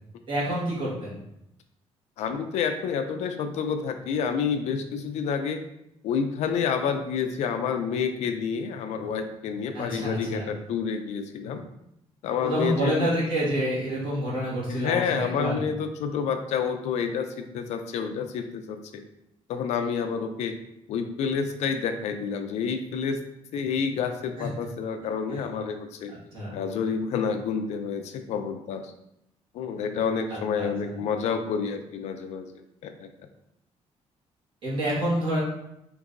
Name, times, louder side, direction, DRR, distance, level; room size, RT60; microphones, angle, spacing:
voice 1, 0.3-1.1 9.7-10.5 12.4-15.6 24.4-24.5 26.3-26.5 30.3-30.9 34.6-35.4, right 1 dB, 45° right, -6 dB, 1.4 m, -28 dB
voice 2, 2.2-5.6 6.0-11.6 12.2-13.1 14.7-19.0 19.5-20.5 20.9-23.2 23.5-26.1 26.5-28.9 29.5-32.5 32.8-33.1, left 6 dB, 80° left, 7 dB, 0.4 m, -29 dB
3.8 x 2.6 x 2.5 m, 0.81 s
cardioid pair, 155°, 11 cm